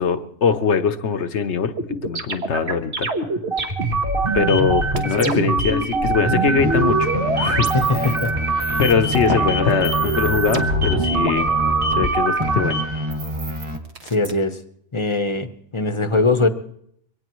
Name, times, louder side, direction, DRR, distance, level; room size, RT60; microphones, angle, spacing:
voice 1, 0.0-1.7 2.0-3.1 4.3-7.7 8.8-11.5 11.9-12.8, left 6 dB, 70° left, 9 dB, 1.2 m, -21 dB
sound 1, 1.8-5.7 6.0-8.3 8.6-9.3 9.7-12.4 13.1-14.3, right 2 dB, 65° right, 1.6 m, -26 dB
sound 2, 3.5-13.1, right 3 dB, 50° right, 2.6 m, -24 dB
sound 3, 6.6-12.1 12.4-13.8, equal, 25° right, 1.5 m, -27 dB
voice 2, 7.7-8.3 14.0-14.6 14.9-16.5, left 3 dB, 25° left, 9 dB, 0.9 m, -21 dB
23.0 x 18.0 x 3.1 m, 0.68 s
omnidirectional pair, 1.2 m